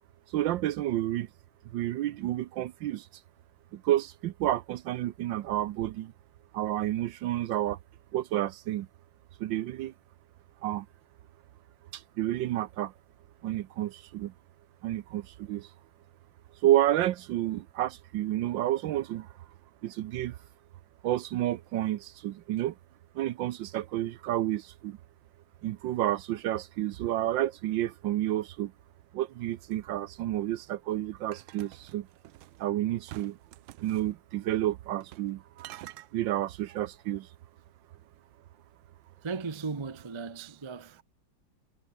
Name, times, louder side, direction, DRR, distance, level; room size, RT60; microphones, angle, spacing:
voice 1, 0.3-1.3 1.7-3.1 3.7-6.1 6.5-7.8 8.1-8.9 9.4-9.9 10.6-10.9 11.9-12.9 13.4-14.3 14.8-15.7 16.6-19.3 19.8-20.4 21.0-22.7 23.1-25.0 25.6-28.7 29.1-32.1 32.6-33.4 33.8-37.3, right 13 dB, 70° right, 1.3 m, -30 dB
sound 1, 31.3-32.6 33.1-34.1 35.0-35.3 35.6-36.1, right 16 dB, 90° right, 1.5 m, -47 dB
voice 2, 39.2-41.0, right 4 dB, 30° right, 0.5 m, -36 dB
omnidirectional pair, 2.3 m